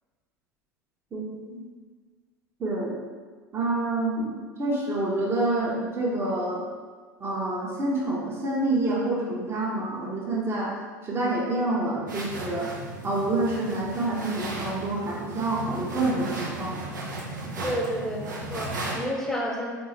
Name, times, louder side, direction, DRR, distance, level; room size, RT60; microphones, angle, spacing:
voice 1, 1.1-1.6 2.6-3.0 3.5-6.6 7.2-10.7 11.0-12.7 13.0-16.8 17.6-17.7, right 2 dB, 25° right, -4 dB, 0.9 m, -27 dB
sound 1, 12.1-19.0, right 2 dB, 75° right, 0.6 m, -35 dB
voice 2, 17.6-19.7, equal, 5° left, -2 dB, 0.8 m, -30 dB
3.9 x 2.7 x 3.2 m, 1.5 s
figure-of-eight pair, 75°, 10 cm